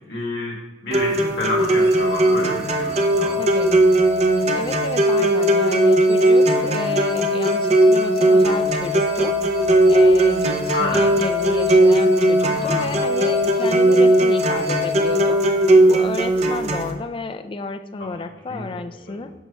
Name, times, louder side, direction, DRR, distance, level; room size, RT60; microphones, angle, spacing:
voice 1, 0.1-3.4 10.7-11.1 12.4-13.0 18.0-18.2 18.5-18.8 19.1-19.3, left 2 dB, 70° left, -2 dB, 1.8 m, -29 dB
sound 1, 0.9-16.9, right 1 dB, 35° right, 0.6 m, -18 dB
sound 2, 1.6-16.0, left 3 dB, 70° right, 1.5 m, -27 dB
voice 2, 3.4-3.8 4.5-9.4 9.9-15.4 15.9-19.3, left 3 dB, 30° left, 9 dB, 0.3 m, -31 dB
9.2 x 6.4 x 2.2 m, 1.1 s
head